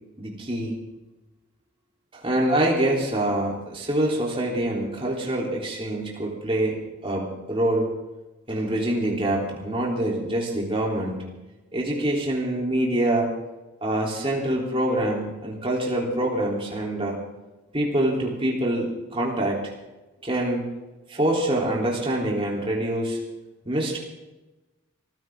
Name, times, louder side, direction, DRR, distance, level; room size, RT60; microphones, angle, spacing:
voice 1, 0.2-0.8 2.1-7.9 8.5-11.2 11.7-13.3 13.8-17.2 17.7-19.6 20.2-20.6 21.1-23.2 23.7-24.0, right 1 dB, 30° right, -3 dB, 3.6 m, -25 dB
24.0 x 15.0 x 3.8 m, 1.1 s
head